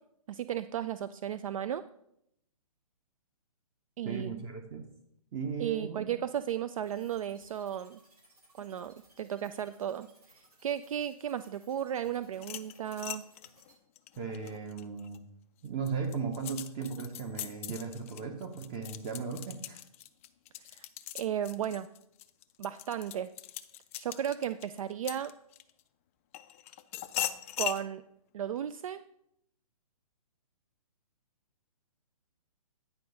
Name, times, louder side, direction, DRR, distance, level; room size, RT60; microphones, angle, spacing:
voice 1, 0.3-1.8 4.0-4.4 5.6-8.0 8.6-10.1 10.6-13.2 20.7-20.9 21.1-21.9 22.6-23.3 24.0-25.3 27.6-28.0 28.3-29.0, right 10 dB, 60° right, 13 dB, 0.4 m, -34 dB
voice 2, 4.0-4.8 5.3-6.1 14.2-15.3 15.6-19.8, right 5 dB, 25° right, 5 dB, 0.7 m, -37 dB
sound 1, 6.8-13.7, right 2 dB, 85° right, 3.3 m, -63 dB
sound 2, 12.3-15.2 15.6-25.8 26.3-27.8, left 14 dB, 25° left, 0.3 m, -40 dB
9.7 x 4.6 x 5.3 m, 0.75 s
hypercardioid pair, 145°, 19 cm